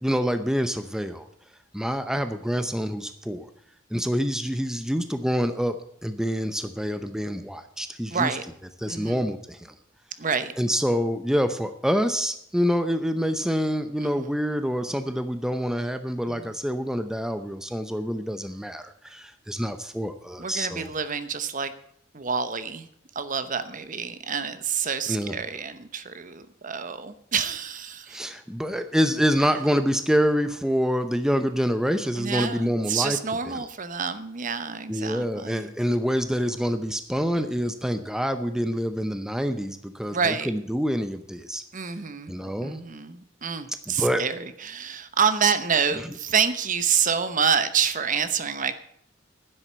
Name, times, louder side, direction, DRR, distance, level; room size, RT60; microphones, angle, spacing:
voice 1, 0.0-1.3 1.7-3.5 3.9-5.8 6.0-8.4 8.8-9.7 10.6-20.9 25.1-25.4 28.1-33.2 33.4-33.7 34.9-41.6 42.3-42.8 43.9-44.2 45.9-46.1, equal, 5° right, 9 dB, 0.7 m, -26 dB
voice 2, 8.1-8.4 8.9-9.2 10.2-10.5 14.0-14.3 20.4-21.7 22.1-22.9 23.1-28.2 32.2-35.7 40.1-40.5 41.7-42.4 42.6-48.7, right 6 dB, 40° right, 12 dB, 0.9 m, -27 dB
10.0 x 7.8 x 8.9 m, 0.69 s
head